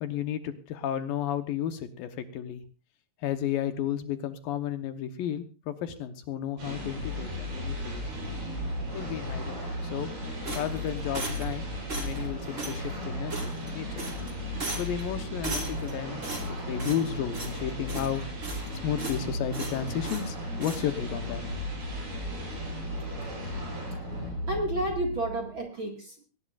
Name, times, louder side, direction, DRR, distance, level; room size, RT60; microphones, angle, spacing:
voice 1, 0.0-2.6 3.2-8.0 8.9-10.1 10.6-11.7 12.0-14.0 14.8-18.2 18.8-21.4, left 9 dB, 70° left, 9 dB, 2.6 m, -33 dB
sound 1, 6.6-25.6, equal, 75° right, 9.0 m, -35 dB
sound 2, 10.4-11.6 11.9-12.3 12.6-12.8 13.3-13.7 14.0-14.3 14.6-15.0 15.4-15.9 16.2-17.1 17.3-17.6 17.9-18.7 19.0-19.2 19.5-20.3 20.6-20.8, right 3 dB, 20° right, 2.5 m, -36 dB
voice 2, 24.0-26.2, right 1 dB, 40° right, 2 dB, 2.1 m, -32 dB
20.5 x 18.0 x 2.5 m, 0.31 s
omnidirectional pair, 4.5 m